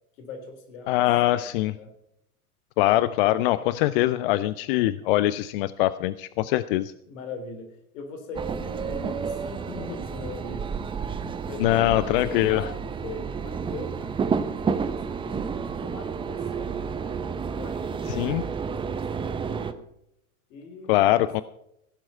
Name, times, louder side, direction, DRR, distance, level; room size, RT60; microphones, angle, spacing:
voice 1, 0.1-2.0 7.1-10.7 11.4-15.5 15.8-17.2 17.5-18.3 18.6-19.9 20.5-21.4, left 3 dB, 55° left, 5 dB, 3.4 m, -41 dB
voice 2, 0.9-1.7 2.8-6.9 11.6-12.6 18.2-18.4 20.9-21.4, left 15 dB, 40° left, 16 dB, 0.5 m, -22 dB
sound 1, 8.3-19.7, right 6 dB, 10° right, 0.6 m, -30 dB
16.5 x 7.7 x 5.4 m, 0.77 s
figure-of-eight pair, 90°, 45 cm